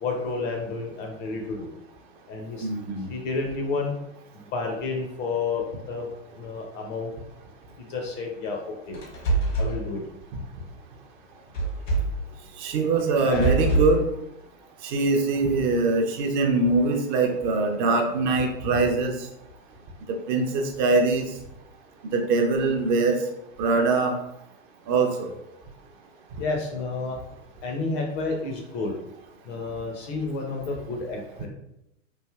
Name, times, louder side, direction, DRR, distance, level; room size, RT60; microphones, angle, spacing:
voice 1, 0.0-1.7 2.3-2.7 3.1-3.9 4.5-6.1 6.3-7.1 7.8-9.0 9.6-10.0 13.2-13.5 26.4-27.2 27.6-28.9 29.5-31.5, left 3 dB, 30° left, 2 dB, 0.4 m, -30 dB
voice 2, 2.6-3.1 12.6-14.1 14.8-19.1 20.3-21.3 22.1-23.2 23.6-24.1 24.9-25.3, right 3 dB, 40° right, 3 dB, 0.4 m, -23 dB
sound 1, 8.9-9.8 11.5-12.2 13.1-14.0, right 2 dB, 80° left, 1.1 m, -24 dB
3.2 x 2.5 x 2.3 m, 0.83 s
hypercardioid pair, 105°, 39 cm